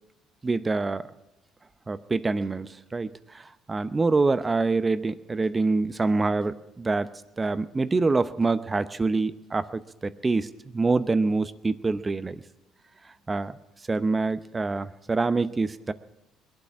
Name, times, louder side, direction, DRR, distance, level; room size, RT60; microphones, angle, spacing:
voice 1, 0.4-1.0 1.9-3.1 3.7-7.1 7.4-10.5 10.7-12.4 13.3-13.5 13.9-15.9, right 3 dB, 25° right, 14 dB, 0.7 m, -25 dB
21.0 x 8.6 x 7.4 m, 0.95 s
supercardioid pair, 75°, 0 cm